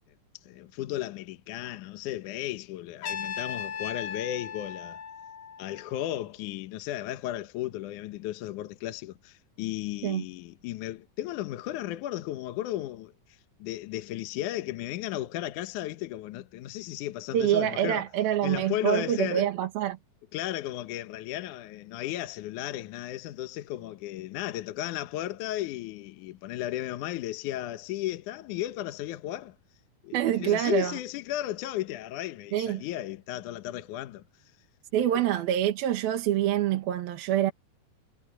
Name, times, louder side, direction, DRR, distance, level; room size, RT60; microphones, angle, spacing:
voice 1, 0.4-5.0 5.6-18.0 18.4-19.5 20.3-29.6 30.0-34.2 35.1-35.2, left 14 dB, 70° left, 2.1 m, -35 dB
Trumpet, 3.0-6.0, left 7 dB, 55° left, 3.6 m, -37 dB
voice 2, 17.3-20.0 30.1-30.9 32.5-32.8 34.9-37.5, right 11 dB, 75° right, 3.3 m, -26 dB
omnidirectional pair, 4.3 m